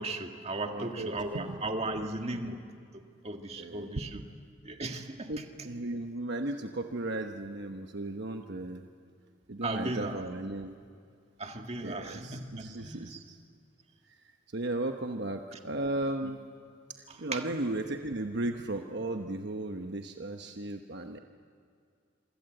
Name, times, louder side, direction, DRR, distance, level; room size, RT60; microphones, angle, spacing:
voice 1, 0.0-2.7 3.2-4.1 4.6-5.3 9.6-10.2 11.4-13.2 17.3-17.4, right 2 dB, 30° right, 4 dB, 1.9 m, -36 dB
voice 2, 0.7-2.0 3.6-4.2 5.3-8.8 9.5-10.7 11.8-13.4 14.1-14.2 14.5-16.4 16.9-21.2, right 2 dB, 60° right, 5 dB, 1.1 m, -36 dB
27.0 x 24.5 x 7.9 m, 2.3 s
head